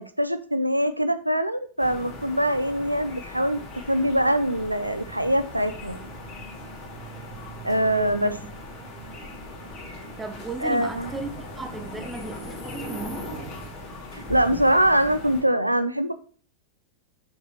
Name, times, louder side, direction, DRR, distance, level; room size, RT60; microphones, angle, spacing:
voice 1, 0.0-3.6 3.9-6.0 7.6-8.3 10.6-11.1 14.1-16.1, equal, 85° right, 0.4 m, -23 dB
sound 1, 1.8-15.4, left 1 dB, 40° left, 3.0 m, -39 dB
voice 2, 7.7-8.5 10.2-13.3, right 3 dB, 10° right, 0.7 m, -36 dB
6.3 x 6.1 x 2.9 m
figure-of-eight pair, 90°, 0 cm